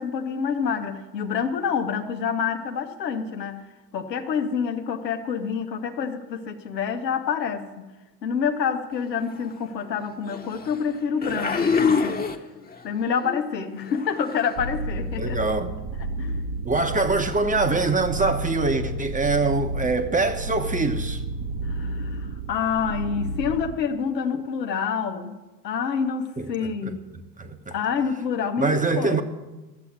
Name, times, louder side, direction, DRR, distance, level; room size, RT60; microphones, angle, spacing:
voice 1, 0.0-3.6 3.9-7.9 8.2-12.3 12.8-15.4 16.2-16.4 21.6-25.4 25.6-27.0 27.7-29.2, left 6 dB, 85° left, 1.1 m, -27 dB
sound 1, 9.3-9.5 10.3-10.8 11.2-12.8 13.2-13.5 13.8-14.5 15.3-15.4, left 5 dB, 20° left, 1.2 m, -26 dB
sound 2, 14.6-23.7, right 1 dB, 55° right, 1.4 m, -31 dB
voice 2, 15.2-15.7 16.6-21.2 26.4-26.9 27.4-27.8 28.6-29.2, right 3 dB, 15° right, 1.1 m, -24 dB
13.5 x 7.8 x 8.5 m
figure-of-eight pair, 65°, 49 cm